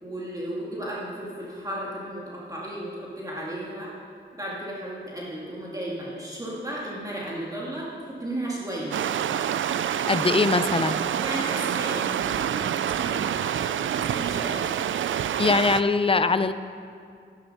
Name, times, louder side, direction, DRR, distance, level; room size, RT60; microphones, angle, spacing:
voice 1, 0.0-3.9 4.3-9.1 11.2-14.7, right 1 dB, 20° right, -5 dB, 2.4 m, -34 dB
sound 1, 8.9-15.8, right 9 dB, 80° right, 0.4 m, -27 dB
voice 2, 9.8-11.1 15.4-16.5, left 4 dB, 30° left, 12 dB, 0.6 m, -22 dB
12.0 x 10.5 x 5.6 m, 2.3 s
cardioid pair, 75°, 20 cm